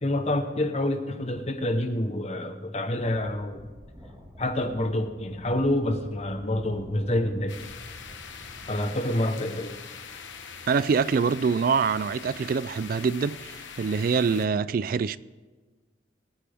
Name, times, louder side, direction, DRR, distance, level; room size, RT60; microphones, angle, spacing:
voice 1, 0.0-3.6 4.4-7.6 8.7-9.8, left 1 dB, 35° left, 1.0 m, -27 dB
sound 1, 3.0-8.8, equal, 10° right, 2.0 m, -48 dB
sound 2, 7.5-14.5, left 6 dB, 80° left, 1.0 m, -43 dB
voice 2, 10.7-15.2, right 5 dB, 50° right, 0.3 m, -25 dB
22.5 x 8.9 x 3.5 m
head